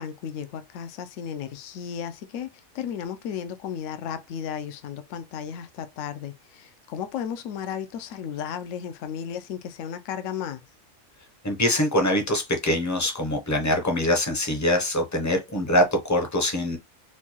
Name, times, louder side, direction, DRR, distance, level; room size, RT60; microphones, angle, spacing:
voice 1, 0.0-10.6, left 8 dB, 70° left, 0.9 m, -34 dB
voice 2, 11.4-16.8, left 1 dB, 20° left, 0.5 m, -23 dB
4.4 x 2.2 x 2.9 m
omnidirectional pair, 1.4 m